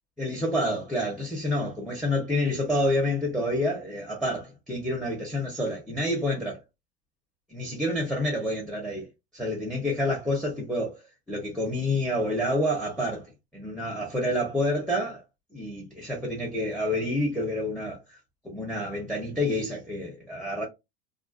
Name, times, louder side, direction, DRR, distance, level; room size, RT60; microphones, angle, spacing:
voice 1, 0.2-6.6 7.5-9.1 9.3-11.0 11.3-15.2 15.5-18.0 18.4-20.6, left 1 dB, ahead, 1.1 m, -28 dB
3.5 x 2.0 x 2.5 m
figure-of-eight pair, 80°, 30 cm